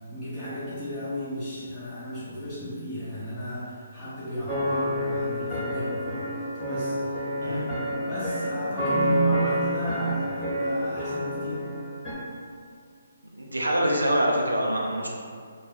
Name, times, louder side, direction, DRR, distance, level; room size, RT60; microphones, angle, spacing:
voice 1, 0.1-6.3 6.7-11.6, right 1 dB, 20° left, -13 dB, 0.7 m, -33 dB
sound 1, 4.5-12.1, equal, ahead, 1.1 m, -29 dB
voice 2, 13.4-15.1, equal, 85° right, -2 dB, 0.4 m, -25 dB
2.2 x 2.2 x 3.1 m, 2.2 s
figure-of-eight pair, 140°, 0 cm